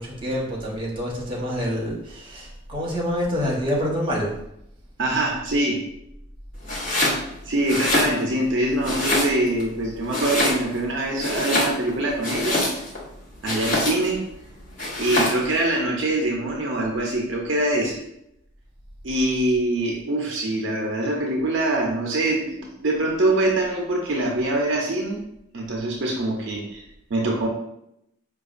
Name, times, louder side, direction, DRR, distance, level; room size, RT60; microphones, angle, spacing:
voice 1, 0.0-4.3, equal, 25° right, -4 dB, 0.9 m, -27 dB
voice 2, 5.0-5.8 7.5-12.6 13.4-14.2 15.0-18.0 19.0-25.2 25.5-26.8 27.1-27.5, right 1 dB, 60° right, -1 dB, 0.5 m, -24 dB
Domestic sounds home sounds, 6.6-7.2 7.6-8.5 8.8-9.6 10.1-10.9 11.2-13.0 13.4-14.2 14.8-15.5, left 1 dB, 40° left, 0.9 m, -24 dB
4.8 x 2.3 x 2.4 m, 0.79 s
head